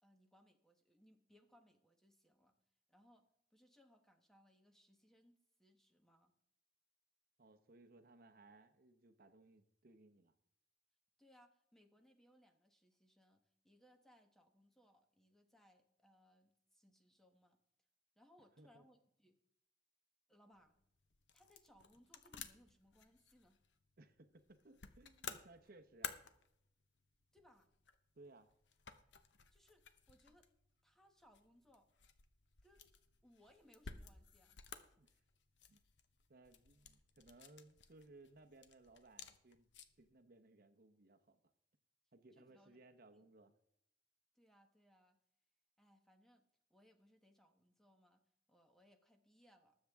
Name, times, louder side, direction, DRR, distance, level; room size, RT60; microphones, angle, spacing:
voice 1, 0.0-2.6 2.9-3.3 3.5-6.3 11.2-17.6 18.2-19.4 20.3-20.8 21.3-23.6 27.3-27.7 29.5-30.5 30.8-31.9 32.6-32.9 33.2-34.6 42.3-42.8 43.1-43.2 44.3-45.2 45.8-46.4 46.7-49.8, equal, ahead, 5 dB, 1.1 m, -70 dB
voice 2, 7.4-10.3 18.6-18.8 24.0-26.2 28.1-28.5 35.0-35.2 35.7-35.8 36.3-39.7 40.0-41.4 42.1-43.5, right 2 dB, 55° right, 7 dB, 0.9 m, -63 dB
sound 1, 20.5-40.1, left 7 dB, 80° left, 0.9 m, -56 dB
20.0 x 7.4 x 3.5 m, 0.73 s
head